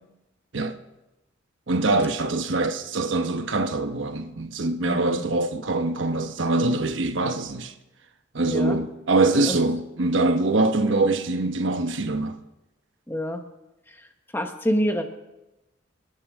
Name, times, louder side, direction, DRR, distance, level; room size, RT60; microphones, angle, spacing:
voice 1, 1.7-7.7 8.3-12.4, right 2 dB, 80° right, 1.0 m, -24 dB
voice 2, 4.8-5.2 8.4-8.8 9.5-9.6 13.1-13.4 14.3-15.0, equal, 10° left, 1.1 m, -26 dB
27.5 x 11.0 x 3.6 m
head